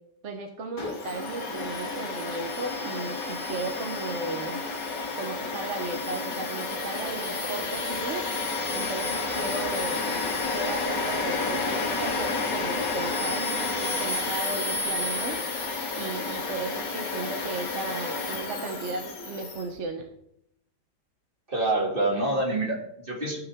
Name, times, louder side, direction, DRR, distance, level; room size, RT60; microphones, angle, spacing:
voice 1, 0.2-4.6 5.2-8.3 8.7-10.1 10.5-15.4 16.0-20.1, right 3 dB, 50° right, 4 dB, 1.3 m, -35 dB
Domestic sounds home sounds, 0.8-19.6, left 3 dB, 85° left, 2.3 m, -30 dB
voice 2, 21.5-23.4, right 2 dB, 30° right, -1 dB, 2.6 m, -26 dB
14.0 x 8.6 x 3.6 m, 0.75 s
omnidirectional pair, 1.8 m